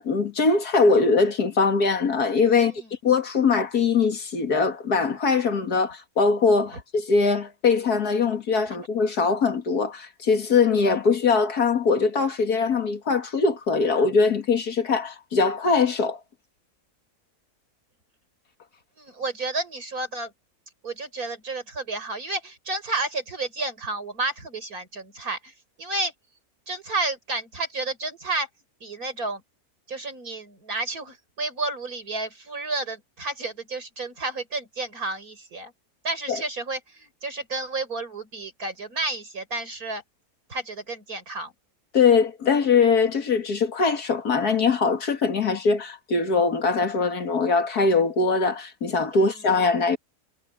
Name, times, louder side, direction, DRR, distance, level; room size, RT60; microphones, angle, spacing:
voice 1, 0.0-16.2 36.3-36.4 41.9-50.0, left 4 dB, 80° left, 2.6 m, -22 dB
voice 2, 2.5-2.9 19.0-20.3 20.8-25.5 25.8-26.1 26.7-28.5 28.8-29.4 29.9-35.7 36.0-40.0 40.5-41.5, right 3 dB, 70° right, 5.5 m, -31 dB
omnidirectional pair, 1.6 m